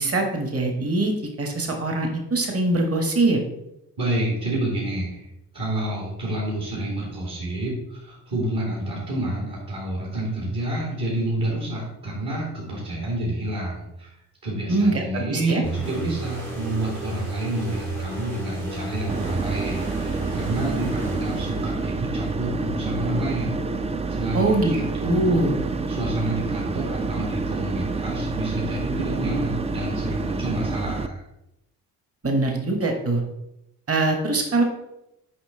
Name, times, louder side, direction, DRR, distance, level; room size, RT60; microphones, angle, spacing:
voice 1, 0.0-3.4 14.7-15.6 24.3-25.6 32.2-33.2 33.9-34.6, right 2 dB, 30° right, 3 dB, 1.6 m, -23 dB
voice 2, 4.0-5.2 5.5-14.1 14.4-23.6 24.1-25.4 25.9-31.2, right 1 dB, 50° right, -4 dB, 2.3 m, -29 dB
sound 1, 15.6-22.1, right 3 dB, 80° right, 2.5 m, -33 dB
sound 2, 19.1-31.1, right 3 dB, 15° right, 0.4 m, -28 dB
5.9 x 5.3 x 3.8 m, 0.86 s
hypercardioid pair, 50°, 46 cm